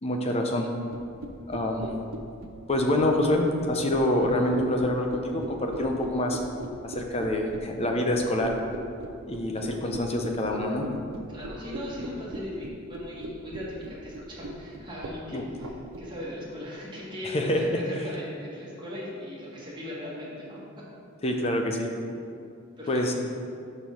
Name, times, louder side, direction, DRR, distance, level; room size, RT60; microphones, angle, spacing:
voice 1, 0.0-0.7 1.5-1.9 2.7-6.4 6.8-8.5 9.3-10.8 15.3-15.5 17.2-17.8 21.2-21.9 22.9-23.1, left 1 dB, 30° left, 2 dB, 0.6 m, -26 dB
sound 1, 0.9-16.0, right 2 dB, 85° right, 0.6 m, -38 dB
voice 2, 11.3-15.7 16.0-20.9 22.8-23.1, left 1 dB, 20° right, -7 dB, 1.6 m, -39 dB
5.3 x 4.4 x 6.1 m, 2.4 s
head